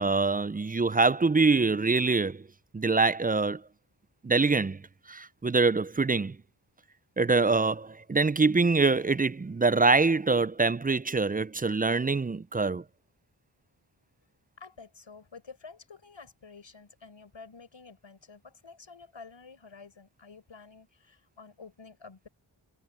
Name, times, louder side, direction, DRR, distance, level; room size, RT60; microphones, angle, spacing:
voice 1, 0.0-2.4 2.7-3.6 4.2-4.8 5.1-6.4 7.2-12.8, right 3 dB, 20° right, 0.4 m, -24 dB
voice 2, 14.6-22.3, left 4 dB, 80° left, 5.7 m, -50 dB
wide cardioid pair, 50°, 45 cm